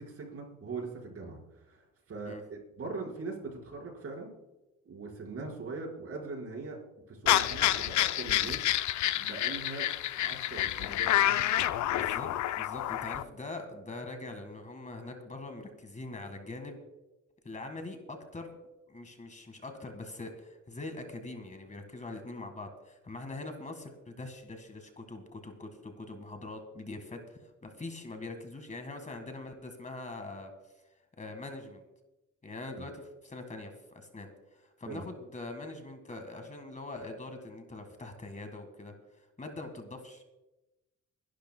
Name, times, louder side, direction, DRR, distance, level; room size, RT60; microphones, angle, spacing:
voice 1, 0.0-1.4 1.7-4.3 4.9-6.8 7.1-8.6 9.2-9.9 10.2-11.7 32.7-32.8 34.9-35.0, right 3 dB, 50° right, -1 dB, 5.0 m, -41 dB
sound 1, 7.3-13.2, left 13 dB, 70° left, 0.6 m, -28 dB
voice 2, 12.0-12.3 12.5-16.8 17.4-18.5 18.9-30.5 31.1-31.8 32.4-40.2, left 2 dB, 25° left, 6 dB, 1.8 m, -43 dB
27.5 x 12.0 x 2.3 m, 1.0 s
cardioid pair, 90°, 30 cm